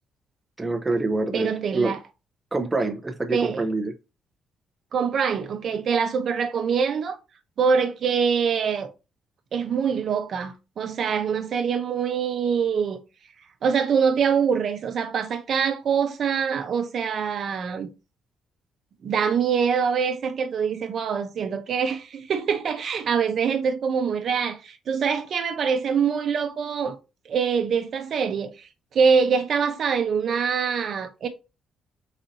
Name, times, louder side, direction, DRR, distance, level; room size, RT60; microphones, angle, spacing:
voice 1, 0.6-1.9 2.5-3.9, right 2 dB, 20° right, 0.7 m, -26 dB
voice 2, 1.3-2.0 3.3-3.6 4.9-7.2 7.6-8.9 9.5-13.0 13.6-17.9 19.0-27.0 27.2-31.3, right 6 dB, 60° right, 0.9 m, -24 dB
4.1 x 2.7 x 4.0 m
cardioid pair, 90°, 0 cm